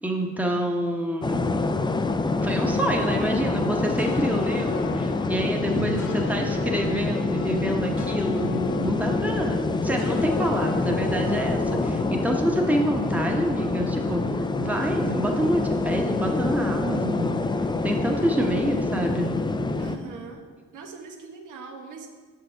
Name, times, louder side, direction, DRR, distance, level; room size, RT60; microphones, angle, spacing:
voice 1, 0.0-1.4 2.3-14.3 14.6-17.3 17.8-19.3, equal, 5° right, 1 dB, 1.0 m, -27 dB
sound 1, 1.2-20.0, left 3 dB, 15° left, 0.4 m, -26 dB
sound 2, 4.0-13.3, left 6 dB, 80° left, 0.7 m, -39 dB
voice 2, 5.7-6.5 19.8-20.4 20.7-22.1, right 5 dB, 85° right, 2 dB, 1.1 m, -41 dB
6.6 x 6.5 x 4.5 m, 1.4 s
cardioid pair, 90°, 30 cm